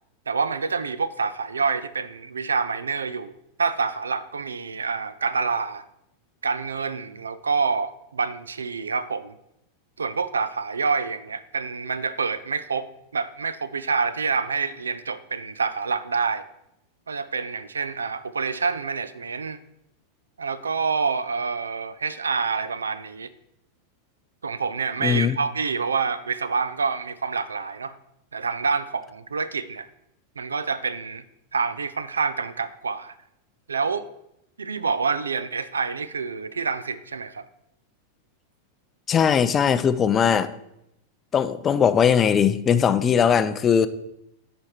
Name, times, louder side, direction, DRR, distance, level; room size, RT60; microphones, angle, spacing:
voice 1, 0.3-5.8 6.4-9.3 10.0-16.4 17.1-19.6 20.4-23.3 24.4-28.0 28.3-29.9 30.4-31.2 31.5-33.1 33.7-34.1 34.6-37.5, right 5 dB, 75° right, 0.4 m, -27 dB
voice 2, 25.0-25.4 39.1-40.5 41.3-43.9, left 7 dB, 25° left, 0.4 m, -20 dB
10.0 x 4.5 x 4.4 m
figure-of-eight pair, 90°, 0 cm